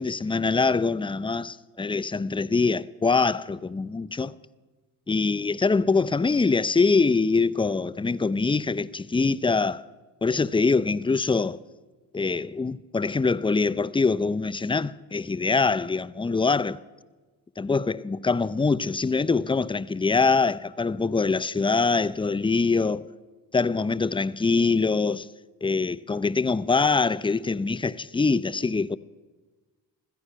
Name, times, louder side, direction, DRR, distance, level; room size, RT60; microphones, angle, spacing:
voice 1, 0.0-4.3 5.1-9.8 10.2-11.6 12.1-16.8 17.6-23.1 23.5-25.3 25.6-29.0, left 4 dB, 10° left, 0.4 m, -24 dB
15.5 x 14.0 x 5.7 m
supercardioid pair, 45°, 45 cm